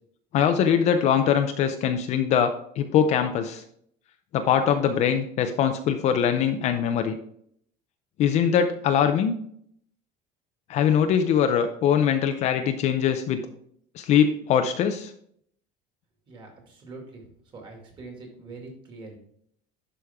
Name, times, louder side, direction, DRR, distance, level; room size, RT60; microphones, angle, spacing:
voice 1, 0.3-3.6 4.3-7.2 8.2-9.3 10.7-13.4 14.0-15.1, left 8 dB, 40° left, 7 dB, 0.5 m, -22 dB
voice 2, 16.3-17.3 17.5-19.2, right 3 dB, 25° right, 1 dB, 2.1 m, -43 dB
11.0 x 5.0 x 3.5 m, 0.66 s
cardioid pair, 180°, 18 cm